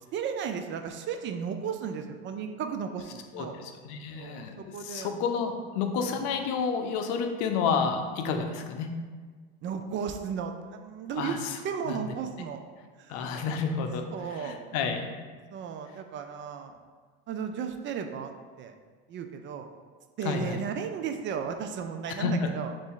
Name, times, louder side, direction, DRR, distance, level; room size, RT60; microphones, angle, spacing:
voice 1, 0.1-3.7 4.1-5.1 6.1-6.4 9.6-11.4 11.6-12.6 13.0-13.4 14.1-14.6 15.5-16.9 17.3-18.3 18.6-18.7 19.1-19.7 20.2-22.7, right 7 dB, 40° right, 6 dB, 0.4 m, -35 dB
voice 2, 3.3-8.9 11.2-11.6 11.9-12.0 13.1-15.1 20.2-20.6 22.2-22.5, left 5 dB, 70° left, 5 dB, 0.6 m, -30 dB
4.0 x 2.6 x 3.7 m, 1.5 s
supercardioid pair, 90°, 29 cm